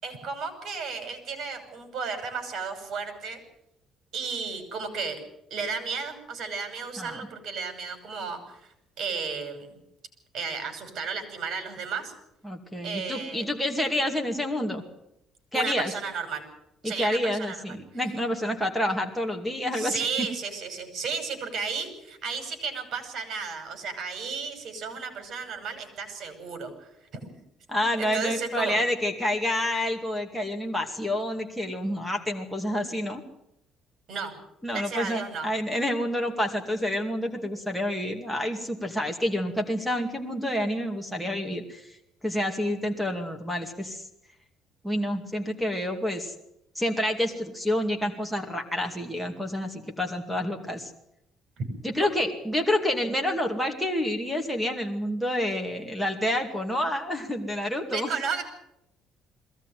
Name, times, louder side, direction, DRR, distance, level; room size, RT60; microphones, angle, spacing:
voice 1, 0.0-3.4 4.1-5.2 5.5-8.7 9.0-9.7 10.3-12.1 12.8-13.5 15.5-16.4 16.8-17.6 19.7-27.3 28.0-28.8 34.1-34.4 34.7-35.5 51.6-51.7 57.9-58.4, right 5 dB, 50° right, 7 dB, 6.1 m, -33 dB
voice 2, 12.4-14.8 15.5-15.9 16.8-20.3 27.7-33.2 34.6-41.9 42.2-44.1 44.8-46.3 46.8-50.9 51.8-58.1, left 1 dB, ahead, 1 dB, 2.4 m, -28 dB
22.0 x 17.0 x 9.3 m, 0.82 s
cardioid pair, 145°, 0 cm